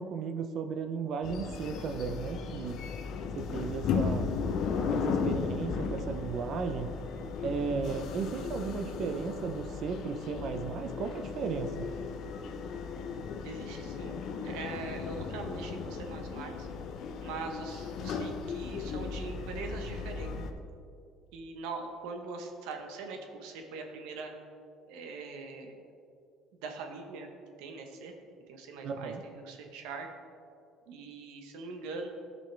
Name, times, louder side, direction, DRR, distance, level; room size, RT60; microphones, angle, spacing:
voice 1, 0.0-2.8 3.3-4.3 4.9-6.9 7.4-11.9 28.8-29.2, right 5 dB, 50° right, 7 dB, 0.6 m, -35 dB
sound 1, 1.2-20.5, left 5 dB, 60° left, 0.6 m, -36 dB
voice 2, 13.4-14.2 14.4-16.7 17.2-20.3 21.3-24.3 24.9-25.7 26.5-27.3 27.6-28.1 28.5-30.1 30.9-32.1, right 4 dB, 90° right, 4 dB, 1.1 m, -42 dB
13.5 x 5.3 x 3.3 m, 2.4 s
cardioid pair, 120°, 0 cm